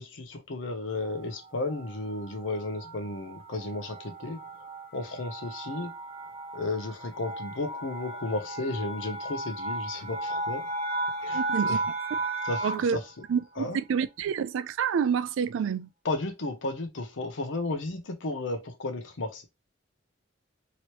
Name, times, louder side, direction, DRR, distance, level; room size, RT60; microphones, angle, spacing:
voice 1, 0.0-4.4 4.9-5.9 6.5-10.6 11.2-11.8 12.4-12.7 12.9-13.0 13.6-13.8 16.0-19.4, left 2 dB, 80° left, 0.7 m, -33 dB
sound 1, 0.9-13.0, right 2 dB, 30° right, 0.7 m, -35 dB
voice 2, 11.3-11.8 12.6-13.0 13.3-15.9, right 7 dB, 85° right, 0.3 m, -28 dB
3.0 x 2.9 x 2.9 m
head